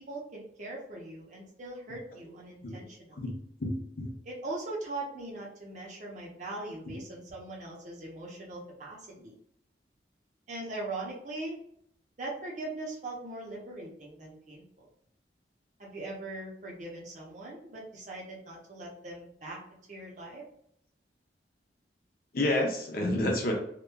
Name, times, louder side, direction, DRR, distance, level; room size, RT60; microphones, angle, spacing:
voice 1, 0.0-3.3 4.2-9.3 10.5-11.6 12.2-14.9 15.8-19.6 19.9-20.4, right 2 dB, 40° right, -3 dB, 0.7 m, -40 dB
voice 2, 3.6-4.1 6.9-7.0 22.3-23.5, left 1 dB, 55° left, 0 dB, 0.6 m, -29 dB
2.9 x 2.2 x 2.2 m, 0.70 s
head